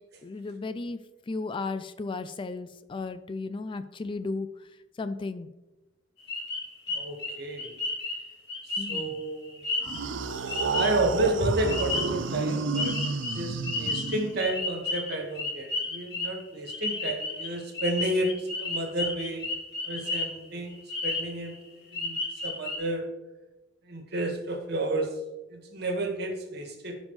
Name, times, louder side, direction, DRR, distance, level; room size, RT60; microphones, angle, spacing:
voice 1, 0.2-1.0 1.3-4.5 5.0-5.5 8.8-9.2, left 3 dB, 25° left, 12 dB, 0.3 m, -34 dB
sound 1, 6.3-11.2 11.7-12.5 12.7-20.4 20.7-21.6 21.9-22.8, left 3 dB, 60° left, 3.0 m, -33 dB
voice 2, 6.9-7.8 8.6-9.7 10.6-19.4 19.8-20.8 21.0-21.5 21.9-23.1 23.8-25.2 25.5-27.0, right 2 dB, 55° right, 3 dB, 1.7 m, -31 dB
sound 2, 9.8-14.6, right 4 dB, 75° right, 0.5 m, -31 dB
15.5 x 5.3 x 3.2 m, 1.0 s
head